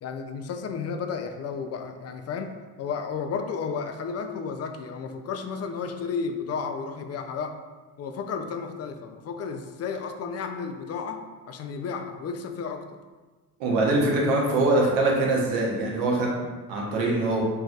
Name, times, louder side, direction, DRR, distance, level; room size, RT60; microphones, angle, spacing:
voice 1, 0.0-2.5 2.8-7.6 8.0-13.0, left 5 dB, 40° left, 6 dB, 0.5 m, -33 dB
voice 2, 13.6-17.4, right 2 dB, 80° right, -2 dB, 1.0 m, -23 dB
5.3 x 2.6 x 2.4 m, 1.3 s
supercardioid pair, 70°, 41 cm